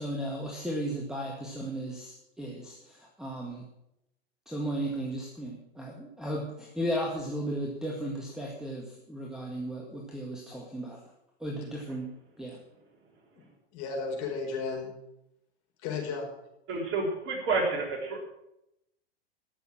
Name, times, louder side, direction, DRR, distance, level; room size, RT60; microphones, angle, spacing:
voice 1, 0.0-3.6 4.5-11.0 11.4-12.1 12.4-12.6, right 1 dB, ahead, 0 dB, 1.9 m, -35 dB
voice 2, 13.3-14.9 15.8-16.3, left 4 dB, 50° left, 0 dB, 5.0 m, -34 dB
voice 3, 16.7-18.2, right 3 dB, 35° right, 0 dB, 4.0 m, -29 dB
14.0 x 7.1 x 7.5 m, 0.83 s
hypercardioid pair, 100°, 33 cm